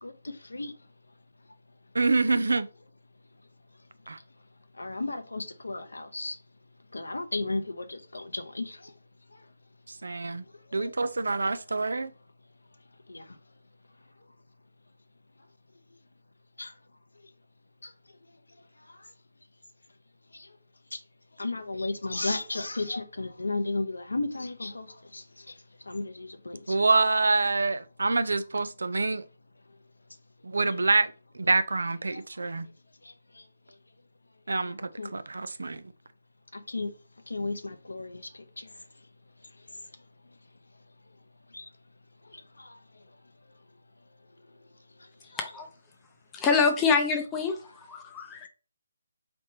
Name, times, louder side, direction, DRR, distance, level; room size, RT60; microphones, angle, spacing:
voice 1, 1.9-2.7 4.1-4.2 9.9-10.4 10.7-12.1 26.7-29.2 30.4-32.7 34.5-34.8 35.1-35.8, right 3 dB, 75° right, 0.5 m, -26 dB
voice 2, 4.8-6.4 6.9-8.9 10.8-10.9 13.1-13.2 16.6-16.7 17.8-17.9 20.3-20.5 20.9-21.0 21.4-24.9 25.1-25.2 25.9-26.7 30.7-30.8 32.1-32.2 35.0-35.2 36.5-36.9 37.3-38.2 38.6-38.7 41.5-41.7 42.6-42.8, left 2 dB, 85° left, 0.7 m, -34 dB
voice 3, 46.3-47.5 47.9-48.5, left 5 dB, 15° left, 0.6 m, -25 dB
4.3 x 3.3 x 2.7 m
figure-of-eight pair, 155°, 0 cm